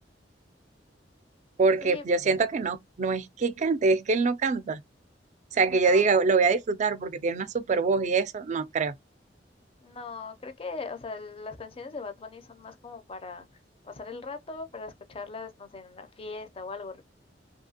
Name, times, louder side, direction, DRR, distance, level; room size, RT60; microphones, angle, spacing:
voice 1, 1.6-4.8 5.5-8.9, right 4 dB, 40° right, 0.4 m, -24 dB
voice 2, 5.6-6.1 9.8-13.4 13.8-17.0, left 4 dB, 30° left, 0.5 m, -40 dB
2.7 x 2.5 x 2.8 m
head